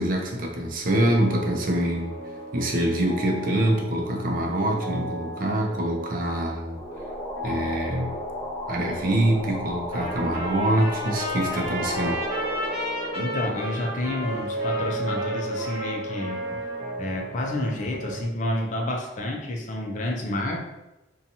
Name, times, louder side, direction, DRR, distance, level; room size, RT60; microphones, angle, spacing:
voice 1, 0.0-2.2 2.5-6.8 7.4-8.2 8.7-12.2, right 1 dB, 50° right, 0 dB, 0.5 m, -25 dB
sound 1, 0.8-18.3, right 1 dB, 80° left, 0.7 m, -36 dB
sound 2, 6.7-14.1, left 1 dB, 10° left, 0.9 m, -35 dB
Trumpet, 9.9-16.9, left 1 dB, 35° right, 0.9 m, -33 dB
voice 2, 13.1-16.6 17.0-20.6, left 1 dB, 45° left, 1 dB, 0.4 m, -29 dB
2.7 x 2.3 x 2.7 m, 1.0 s
head